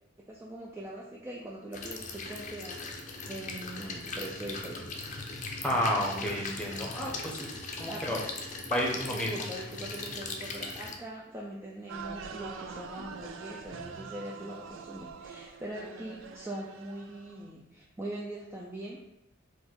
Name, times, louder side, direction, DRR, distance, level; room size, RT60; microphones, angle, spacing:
voice 1, 0.3-2.9 3.3-5.0 7.9-8.2 9.1-19.1, right 1 dB, 10° right, -4 dB, 0.4 m, -42 dB
sound 1, 1.7-11.0, left 3 dB, 40° left, 0.6 m, -39 dB
voice 2, 5.6-7.5 7.8-8.2 8.7-9.3, equal, 5° left, -3 dB, 0.8 m, -31 dB
sound 2, 11.9-17.5, right 5 dB, 75° right, 0.4 m, -44 dB
4.2 x 2.5 x 4.5 m, 0.89 s
head